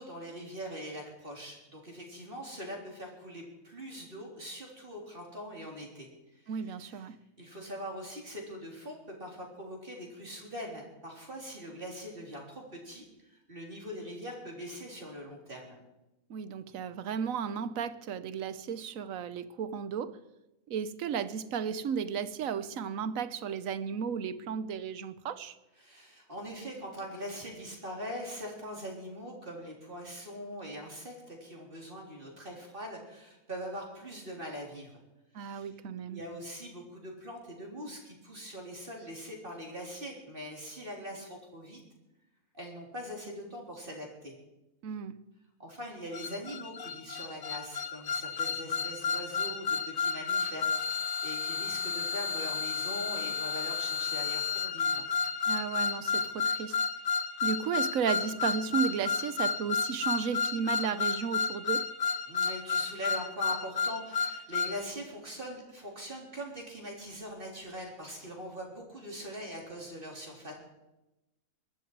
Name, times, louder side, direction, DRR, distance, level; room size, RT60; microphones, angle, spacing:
voice 1, 0.0-7.1 7.4-15.8 25.8-34.9 35.4-35.7 36.1-41.8 42.5-44.3 45.6-55.1 62.3-70.5, equal, 35° right, 0 dB, 3.7 m, -42 dB
voice 2, 6.5-7.1 16.3-20.2 20.7-25.6 35.3-36.2 44.8-45.2 55.5-56.8 57.4-61.9, right 7 dB, 70° right, 14 dB, 1.2 m, -34 dB
sound 1, 46.1-64.8, left 5 dB, 55° left, 0.6 m, -32 dB
22.5 x 12.0 x 4.7 m, 0.97 s
omnidirectional pair, 1.5 m